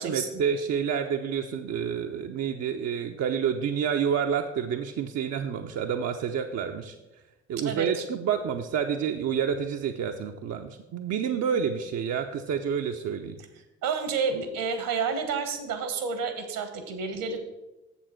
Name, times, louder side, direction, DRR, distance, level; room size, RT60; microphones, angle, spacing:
voice 1, 0.0-6.9 7.5-13.4, right 7 dB, 50° right, 4 dB, 0.6 m, -29 dB
voice 2, 7.6-8.0 13.8-17.4, right 5 dB, 65° right, 8 dB, 1.3 m, -30 dB
7.4 x 6.9 x 4.4 m, 1.0 s
hypercardioid pair, 45°, 36 cm